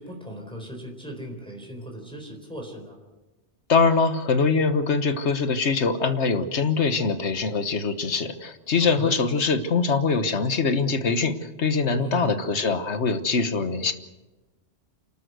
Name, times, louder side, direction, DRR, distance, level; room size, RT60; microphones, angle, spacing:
voice 1, 0.0-3.0 8.8-9.3 11.9-12.6, right 1 dB, 5° left, 1 dB, 3.9 m, -37 dB
voice 2, 3.7-13.9, left 4 dB, 75° left, 10 dB, 1.5 m, -23 dB
28.0 x 13.0 x 8.0 m, 1.2 s
omnidirectional pair, 1.2 m